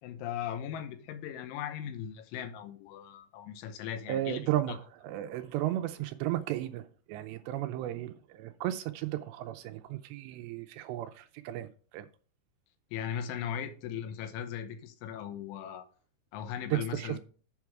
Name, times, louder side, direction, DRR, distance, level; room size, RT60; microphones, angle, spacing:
voice 1, 0.0-4.4 4.7-4.8 12.9-15.9 16.3-17.2, left 9 dB, 90° left, 3.4 m, -38 dB
voice 2, 4.1-12.1 16.7-17.2, right 14 dB, 85° right, 2.6 m, -34 dB
8.4 x 5.9 x 4.6 m
omnidirectional pair, 5.3 m